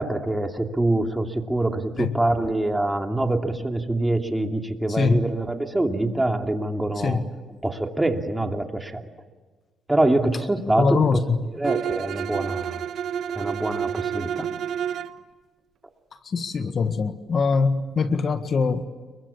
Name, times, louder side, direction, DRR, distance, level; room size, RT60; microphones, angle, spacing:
voice 1, 0.0-7.2 7.6-9.0 9.9-11.2 11.6-12.8 13.4-14.5, right 2 dB, 10° right, 4 dB, 2.8 m, -25 dB
voice 2, 4.9-5.2 7.0-7.2 10.8-11.4 16.2-18.9, left 4 dB, 50° left, 9 dB, 1.7 m, -23 dB
Bowed string instrument, 11.6-15.2, right 9 dB, 70° right, 1.1 m, -29 dB
29.5 x 23.0 x 7.3 m, 1.3 s
cardioid pair, 90°, 0 cm